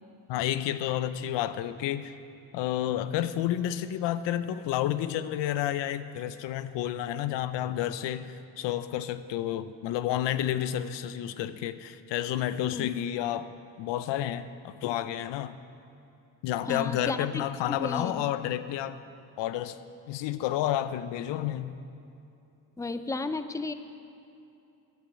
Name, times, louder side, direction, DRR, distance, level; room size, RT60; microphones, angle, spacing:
voice 1, 0.3-2.2 2.5-13.5 13.8-15.5 16.4-19.0 19.4-19.8 20.1-21.8, left 12 dB, 75° left, 13 dB, 0.6 m, -30 dB
voice 2, 16.7-18.2 22.8-23.7, left 3 dB, 5° left, 10 dB, 0.6 m, -33 dB
10.5 x 8.3 x 7.4 m, 2.7 s
supercardioid pair, 55°, 43 cm